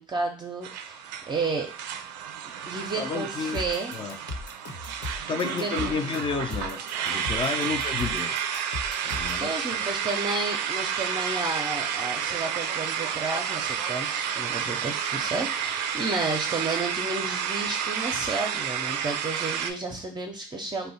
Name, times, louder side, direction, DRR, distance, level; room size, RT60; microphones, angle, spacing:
voice 1, 0.0-1.7 2.7-4.0 5.4-6.0 9.4-20.9, right 3 dB, 20° right, 1 dB, 0.6 m, -32 dB
sound 1, 0.6-19.7, right 8 dB, 85° right, 0.4 m, -31 dB
voice 2, 3.0-3.6 3.9-4.2 5.3-8.6 9.0-9.9, left 5 dB, 25° left, 7 dB, 0.6 m, -31 dB
sound 2, 3.5-9.4, left 2 dB, 60° left, 1.2 m, -37 dB
2.7 x 2.2 x 4.1 m, 0.36 s
hypercardioid pair, 75°, 21 cm